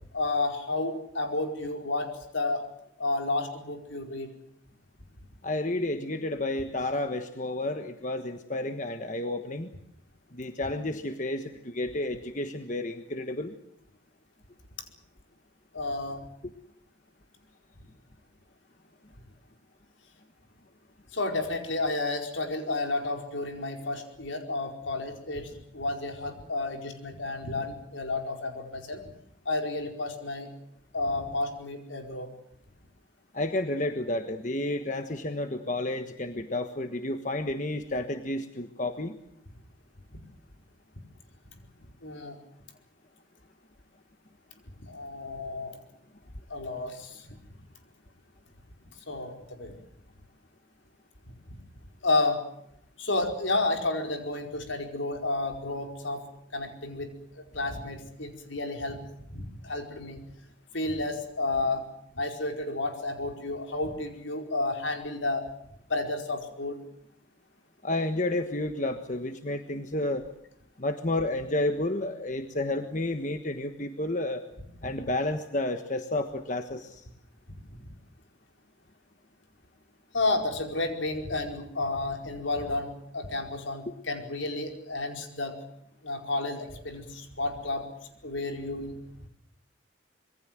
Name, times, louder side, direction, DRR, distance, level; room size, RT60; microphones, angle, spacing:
voice 1, 0.1-2.6 3.0-4.3 15.7-16.2 21.1-29.0 29.4-30.5 30.9-32.3 42.0-42.4 44.8-45.7 46.5-47.2 49.1-49.7 52.0-52.4 53.0-56.2 56.5-59.0 59.3-60.2 60.7-61.8 62.1-65.5 65.9-66.8 80.1-85.6 86.0-87.9 88.2-89.0, left 2 dB, 75° left, 4 dB, 4.8 m, -31 dB
voice 2, 5.4-9.7 10.3-13.5 33.3-39.1 67.8-70.3 70.8-74.4 74.8-77.0 83.9-84.0, left 1 dB, 40° left, 7 dB, 1.4 m, -31 dB
26.0 x 22.5 x 7.6 m, 0.73 s
head